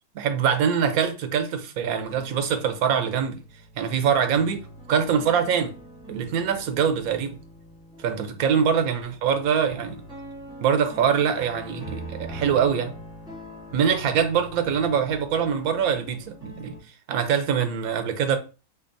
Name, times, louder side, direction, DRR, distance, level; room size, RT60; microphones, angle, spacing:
voice 1, 0.1-3.4 3.8-4.6 4.9-5.7 6.1-7.3 8.0-10.0 10.6-12.9 13.7-16.7 17.1-18.4, right 7 dB, 90° right, 1.1 m, -23 dB
sound 1, 2.0-16.8, right 1 dB, 5° right, 1.3 m, -43 dB
3.9 x 3.4 x 2.6 m
omnidirectional pair, 1.4 m